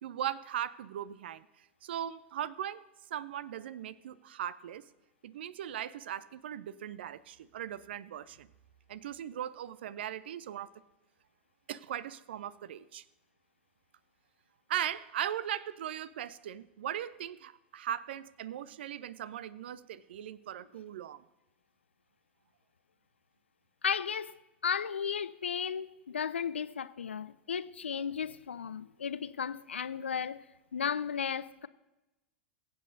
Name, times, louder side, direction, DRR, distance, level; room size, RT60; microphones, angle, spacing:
voice 1, 0.0-2.9 3.1-4.9 5.2-8.5 8.9-10.7 11.7-13.0 14.7-21.2, right 10 dB, 65° right, 0.4 m, -39 dB
voice 2, 23.8-24.3 24.6-30.4 30.7-31.7, left 7 dB, 75° left, 0.4 m, -34 dB
22.0 x 7.9 x 2.7 m
figure-of-eight pair, 90°, 6 cm